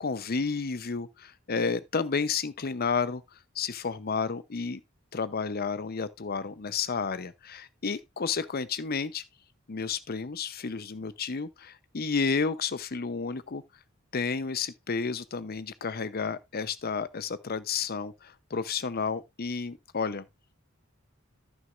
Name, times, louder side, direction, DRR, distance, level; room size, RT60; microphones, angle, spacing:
voice 1, 0.0-3.2 3.6-4.8 5.1-9.2 9.7-13.6 14.1-20.2, left 5 dB, 50° left, 0.7 m, -31 dB
14.0 x 6.3 x 2.5 m
head